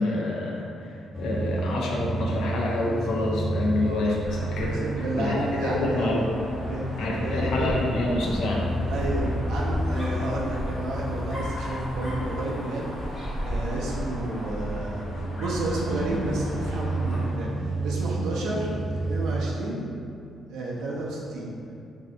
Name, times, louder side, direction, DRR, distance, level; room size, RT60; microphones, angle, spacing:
voice 1, 0.0-4.8 5.2-6.3 7.0-8.6, left 2 dB, 80° left, -3 dB, 0.4 m, -27 dB
sound 1, 1.1-19.7, right 1 dB, 10° left, 0.3 m, -32 dB
Dog, 4.1-17.4, equal, 40° left, 0.9 m, -36 dB
voice 2, 4.6-6.3 6.7-8.0 8.9-19.8 20.5-21.5, right 2 dB, 85° right, -4 dB, 0.4 m, -31 dB
3.1 x 2.7 x 2.6 m, 2.5 s
cardioid pair, 90°, 0 cm